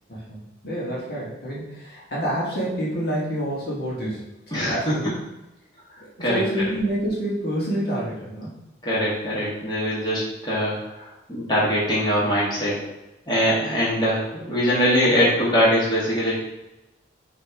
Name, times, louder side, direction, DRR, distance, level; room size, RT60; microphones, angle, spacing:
voice 1, 0.1-4.3 4.7-5.1 6.0-8.6, right 1 dB, 55° left, -6 dB, 1.9 m, -28 dB
voice 2, 4.5-5.0 6.2-6.4 8.8-12.9 13.3-16.3, equal, 25° left, -7 dB, 1.9 m, -22 dB
6.6 x 3.5 x 4.6 m, 0.95 s
head